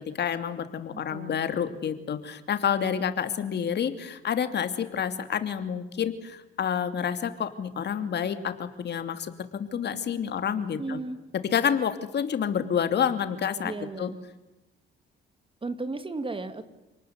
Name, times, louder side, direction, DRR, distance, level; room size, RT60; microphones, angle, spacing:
voice 1, 0.2-11.0 11.5-13.7 14.0-14.1, left 8 dB, 60° left, 9 dB, 2.8 m, -28 dB
voice 2, 0.9-1.4 10.8-11.2 13.6-14.2 15.6-16.6, right 3 dB, 25° right, 11 dB, 2.6 m, -34 dB
29.0 x 19.5 x 9.6 m, 0.99 s
cardioid pair, 90°, 20 cm